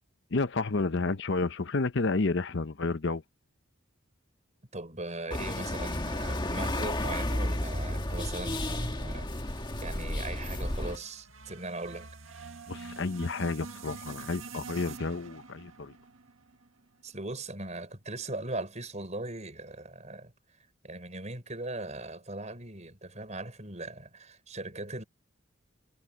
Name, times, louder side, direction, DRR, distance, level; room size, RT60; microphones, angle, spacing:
voice 1, 0.3-3.2 12.7-15.9, left 3 dB, 60° left, 0.8 m, -30 dB
voice 2, 4.7-12.1 17.0-20.3 20.8-25.0, right 2 dB, 35° right, 5.7 m, -39 dB
sound 1, 5.3-11.0, left 1 dB, 20° left, 1.7 m, -32 dB
sound 2, 8.7-17.0, right 4 dB, 80° right, 1.9 m, -47 dB
head